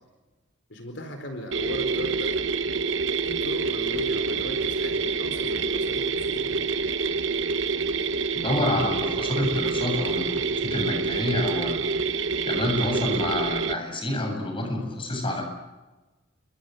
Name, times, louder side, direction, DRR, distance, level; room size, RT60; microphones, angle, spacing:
voice 1, 0.7-2.5 3.3-6.5, left 1 dB, 60° left, 5 dB, 4.3 m, -38 dB
sound 1, 1.5-13.7, right 4 dB, 65° right, 1.3 m, -27 dB
voice 2, 8.3-11.8 12.5-15.4, left 1 dB, 25° left, 2 dB, 7.8 m, -28 dB
30.0 x 24.0 x 8.0 m, 1.2 s
head